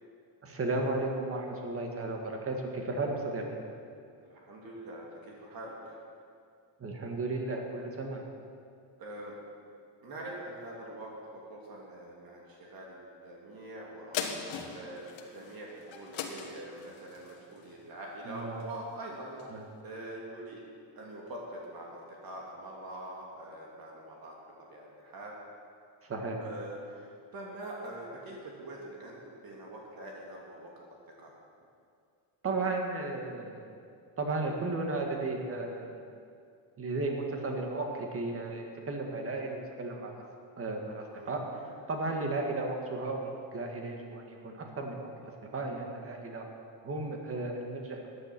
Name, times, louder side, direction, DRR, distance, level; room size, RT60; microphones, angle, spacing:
voice 1, 0.4-3.4 6.8-8.3 18.3-18.6 19.5-19.6 26.0-26.4 32.4-33.8 34.2-36.1 36.8-40.1 40.6-41.4 41.9-46.4 46.8-48.1, right 2 dB, 30° right, 2 dB, 1.9 m, -34 dB
voice 2, 4.2-6.0 9.0-9.4 10.0-14.3 14.7-20.6 21.0-25.3 26.4-30.7 31.2-31.3 41.0-41.4 41.7-41.8, right 1 dB, 45° right, -2 dB, 2.6 m, -44 dB
sound 1, 14.1-18.9 19.4-19.5, left 7 dB, 75° left, 1.5 m, -40 dB
14.5 x 10.0 x 6.1 m, 2.3 s
cardioid pair, 150°, 47 cm